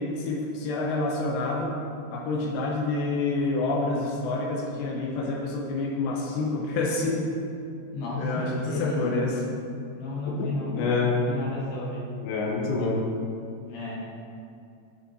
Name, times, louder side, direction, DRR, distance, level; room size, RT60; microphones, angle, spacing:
voice 1, 0.0-1.7 2.1-7.3 8.2-9.4 10.3-10.5 10.7-11.2 12.2-13.0, left 3 dB, 90° left, -1 dB, 3.1 m, -27 dB
voice 2, 7.9-9.2 10.0-10.8 11.1-12.0 13.6-14.0, left 3 dB, 70° left, -4 dB, 2.9 m, -32 dB
12.0 x 6.6 x 2.7 m, 2.5 s
omnidirectional pair, 4.7 m